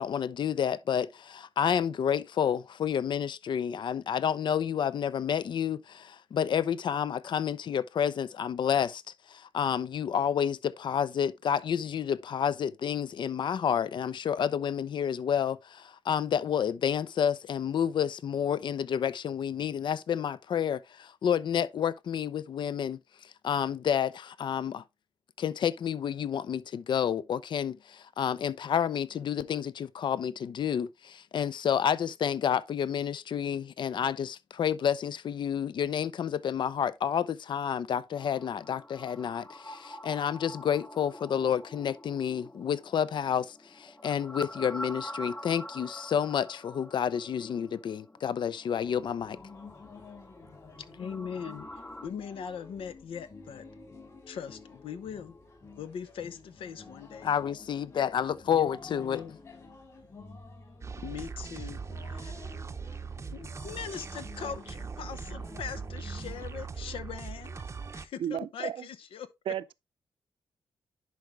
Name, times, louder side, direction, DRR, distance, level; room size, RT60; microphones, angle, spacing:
voice 1, 0.0-9.0 9.3-23.0 23.4-24.8 25.4-49.4 57.2-59.2, left 8 dB, 60° left, 0.5 m, -30 dB
sound 1, 38.1-52.1, equal, 15° left, 0.6 m, -46 dB
sound 2, 48.8-66.7, left 3 dB, 40° left, 3.6 m, -51 dB
voice 2, 51.0-53.6 54.3-55.3 55.7-57.3 58.5-59.4 61.0-62.5 63.3-67.6 67.9-69.3, left 7 dB, 85° left, 0.9 m, -41 dB
sound 3, 60.8-68.1, right 5 dB, 30° right, 0.6 m, -40 dB
voice 3, 68.2-68.8 69.5-69.7, right 10 dB, 75° right, 0.4 m, -33 dB
10.5 x 4.7 x 3.2 m
cardioid pair, 110°, 9 cm